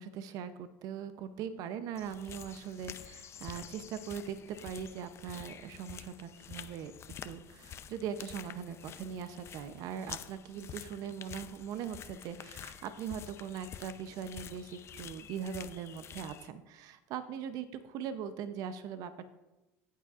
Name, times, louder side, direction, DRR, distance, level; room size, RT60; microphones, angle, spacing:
voice 1, 0.0-6.9 7.2-19.3, right 8 dB, 60° right, 11 dB, 0.6 m, -41 dB
sound 1, 2.0-16.5, left 9 dB, 40° left, 0.6 m, -48 dB
13.0 x 8.4 x 2.5 m, 1.0 s
supercardioid pair, 95°, 7 cm